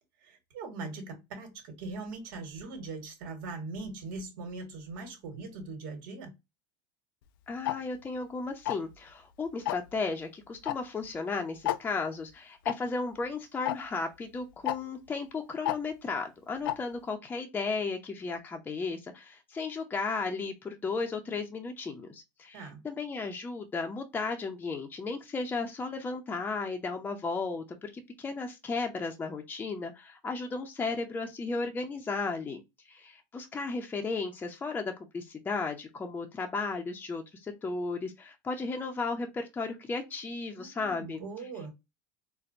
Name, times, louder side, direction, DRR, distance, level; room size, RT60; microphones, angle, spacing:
voice 1, 0.2-6.3 22.5-22.8 40.6-41.7, right 3 dB, 70° right, 1.6 m, -41 dB
voice 2, 7.5-32.6 32.9-41.2, left 4 dB, 15° left, 0.6 m, -35 dB
Tick-tock, 7.7-7.8 8.7-8.9 9.7-9.9 10.7-10.8 11.0-11.1 11.7-11.8 12.7-12.8 13.7-13.8 14.7-14.8 15.7-15.8 16.7-16.8, left 14 dB, 80° left, 0.4 m, -29 dB
4.2 x 2.2 x 2.6 m
supercardioid pair, 120°, 11 cm